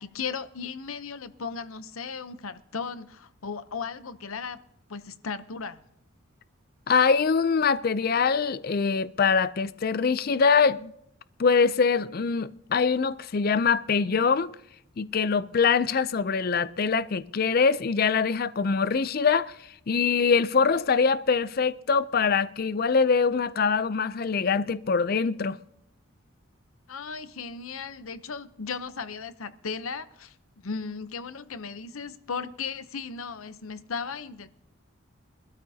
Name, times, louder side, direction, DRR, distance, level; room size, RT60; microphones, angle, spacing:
voice 1, 0.0-4.6 4.9-5.8 26.9-30.3 30.6-34.5, left 5 dB, 80° left, 0.8 m, -36 dB
voice 2, 6.9-10.9 11.4-14.5 15.0-19.5 19.9-25.6, left 5 dB, 45° left, 0.4 m, -23 dB
23.5 x 13.0 x 2.8 m
head